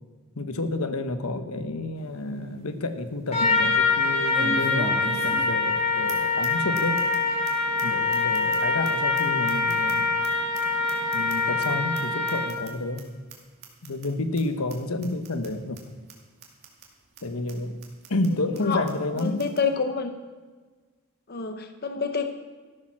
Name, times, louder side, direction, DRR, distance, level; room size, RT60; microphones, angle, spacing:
voice 1, 0.4-7.0 7.8-10.2 11.1-13.0 13.8-15.8 17.2-17.8 18.1-19.5, left 2 dB, 85° left, 8 dB, 1.1 m, -30 dB
sound 1, 2.0-2.1 2.5-2.6 4.3-5.8 6.1-6.2 6.4-6.5 6.7-7.2 7.4-7.5 7.8-7.9 8.1-10.3 10.5-11.7 11.9-12.0 12.3-12.7 13.0-13.1 13.3-13.4 13.6-14.1 14.4-14.5 14.7-14.8 15.0-15.5 15.7-15.8 16.1-16.2 16.4-16.9 17.2-17.3 17.5-17.6 17.8-18.3 18.5-18.6 18.9-19.0 19.2-19.6, right 3 dB, 50° right, 2.3 m, -39 dB
Trumpet, 3.3-12.7, left 3 dB, 30° left, 2.3 m, -24 dB
voice 2, 19.2-20.1 21.3-22.3, left 5 dB, 45° left, 7 dB, 0.8 m, -27 dB
14.0 x 8.7 x 6.1 m, 1.4 s
head